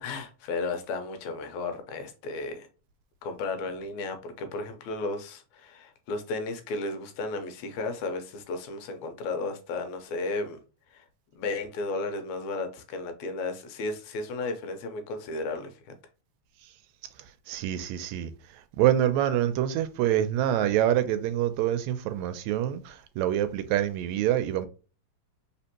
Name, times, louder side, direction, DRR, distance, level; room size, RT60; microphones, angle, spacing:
voice 1, 0.0-2.7 3.2-10.6 10.9-11.1 11.3-15.9, left 3 dB, 80° left, 2.1 m, -34 dB
voice 2, 17.5-18.3 18.8-24.7, right 11 dB, 80° right, 1.7 m, -26 dB
4.2 x 3.6 x 2.9 m
omnidirectional pair, 3.4 m